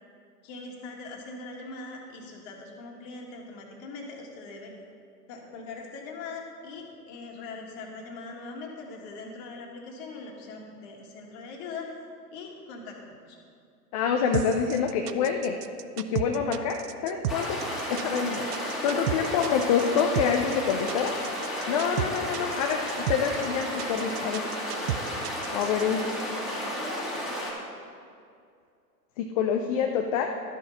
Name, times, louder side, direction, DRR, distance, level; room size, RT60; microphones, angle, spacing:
voice 1, 0.4-4.7 5.3-12.0 12.3-13.4, left 3 dB, 40° left, 0 dB, 2.0 m, -41 dB
voice 2, 13.9-15.6 16.0-17.6 17.9-21.2 21.7-24.5 25.5-26.1 29.2-30.3, left 7 dB, 25° left, 4 dB, 0.4 m, -27 dB
sound 1, 14.3-25.8, right 11 dB, 75° right, 0.6 m, -33 dB
sound 2, 17.3-27.5, equal, ahead, 2.5 m, -33 dB
12.0 x 6.2 x 5.6 m, 2.3 s
hypercardioid pair, 115°, 47 cm